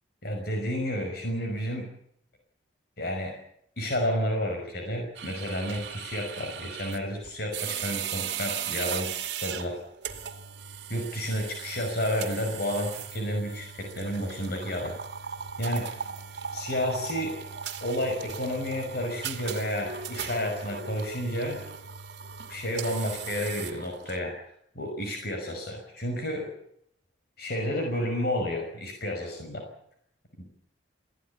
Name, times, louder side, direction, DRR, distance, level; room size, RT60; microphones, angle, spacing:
voice 1, 0.2-1.9 3.0-3.3 3.8-9.1 9.4-9.8 10.9-14.9 15.6-15.9 16.5-17.3 17.8-21.6 22.5-24.4 24.8-26.5 27.4-29.6 30.4-30.5, equal, 55° left, 3 dB, 5.5 m, -31 dB
sound 1, 5.1-24.2, right 7 dB, 60° right, 2.4 m, -37 dB
22.0 x 17.0 x 8.4 m, 0.72 s
head